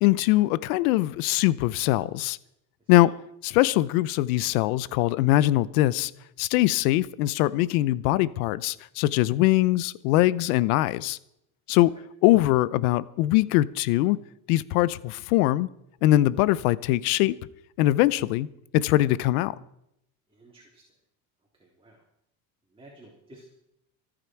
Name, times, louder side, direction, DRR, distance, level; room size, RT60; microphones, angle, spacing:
voice 1, 0.0-2.4 2.9-3.1 3.4-6.1 6.4-11.2 11.7-11.9 12.2-14.2 14.5-15.7 16.0-17.4 17.8-18.5 18.7-19.5, left 16 dB, 85° left, 19 dB, 0.8 m, -22 dB
voice 2, 20.3-20.8 21.6-22.0 22.7-23.5, right 2 dB, 10° right, -3 dB, 3.5 m, -51 dB
25.5 x 9.0 x 4.6 m, 0.79 s
supercardioid pair, 105°, 42 cm